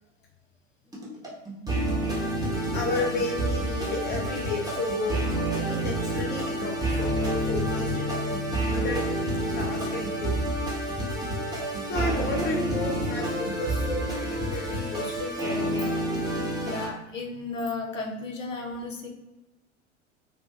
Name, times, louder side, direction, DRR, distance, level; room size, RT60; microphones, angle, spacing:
sound 1, 0.9-16.9, right 1 dB, 10° right, 1.2 m, -28 dB
voice 1, 2.7-8.4 8.7-9.1 9.6-10.4 11.4-11.5 11.8-16.0, left 3 dB, 30° left, 0 dB, 0.5 m, -33 dB
voice 2, 16.6-19.1, left 3 dB, 90° left, 1 dB, 0.6 m, -34 dB
4.6 x 2.4 x 2.4 m, 1.0 s
figure-of-eight pair, 75°, 37 cm